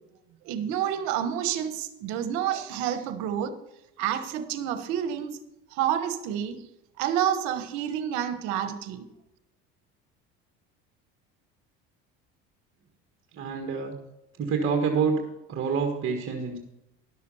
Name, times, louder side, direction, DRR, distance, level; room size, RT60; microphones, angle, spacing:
voice 1, 0.4-3.6 4.0-5.4 5.7-6.7 7.0-9.1, right 9 dB, 75° right, 1.3 m, -29 dB
voice 2, 13.3-14.0 14.4-16.6, right 5 dB, 45° right, 1.7 m, -27 dB
11.5 x 6.7 x 5.6 m
supercardioid pair, 85°, 30 cm